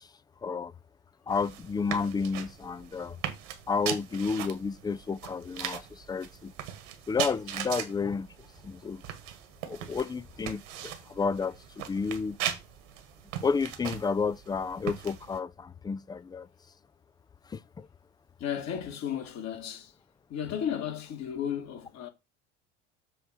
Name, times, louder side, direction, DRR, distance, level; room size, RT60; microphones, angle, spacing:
voice 1, 0.4-0.7 1.3-3.2 3.7-6.5 7.1-8.3 8.6-9.0 9.6-12.4 13.4-16.5 17.5-17.9, left 5 dB, 10° left, 0.4 m, -31 dB
sound 1, 1.3-15.4, right 10 dB, 65° right, 1.6 m, -39 dB
voice 2, 18.4-19.9 20.3-22.1, left 9 dB, 50° left, 2.0 m, -34 dB
7.7 x 3.3 x 6.4 m
hypercardioid pair, 70°, 36 cm